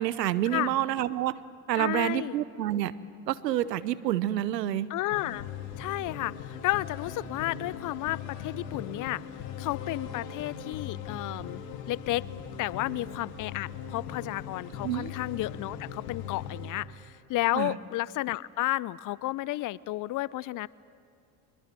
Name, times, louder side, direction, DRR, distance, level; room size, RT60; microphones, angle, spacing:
voice 1, 0.0-1.4 1.7-2.9 3.3-4.9 14.8-15.1 17.5-17.8, right 12 dB, 90° right, 17 dB, 0.8 m, -28 dB
voice 2, 1.7-2.4 4.9-5.5 5.8-9.2 9.6-11.6 11.9-12.3 12.6-20.7, left 17 dB, 40° left, 22 dB, 0.5 m, -32 dB
sound 1, 5.1-16.7, left 7 dB, 70° left, 2.3 m, -40 dB
23.0 x 22.0 x 7.5 m, 2.5 s
hypercardioid pair, 75°, 48 cm